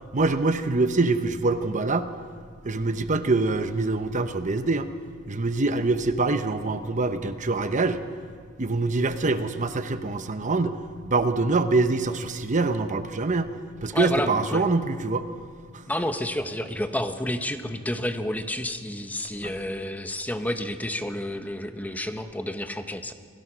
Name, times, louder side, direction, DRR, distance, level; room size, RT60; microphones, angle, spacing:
voice 1, 0.1-2.1 2.6-4.9 5.3-8.0 8.6-10.8 11.0-13.5 13.8-15.2 19.4-19.5, right 3 dB, 35° right, 10 dB, 0.9 m, -24 dB
voice 2, 13.9-14.6 15.9-23.1, left 1 dB, 10° left, 8 dB, 1.0 m, -30 dB
27.5 x 17.5 x 6.2 m, 2.1 s
head